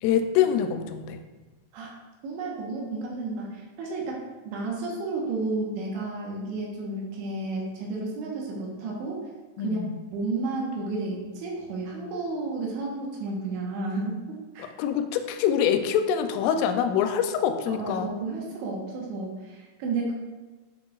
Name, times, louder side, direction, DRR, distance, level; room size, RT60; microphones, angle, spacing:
voice 1, 0.0-1.2 9.6-10.0 14.6-18.1, left 8 dB, 90° left, 7 dB, 3.1 m, -25 dB
voice 2, 2.2-9.2 9.6-9.8 10.1-14.7 17.7-20.1, right 3 dB, 75° right, -2 dB, 3.2 m, -32 dB
8.6 x 6.1 x 2.4 m, 1.3 s
omnidirectional pair, 5.5 m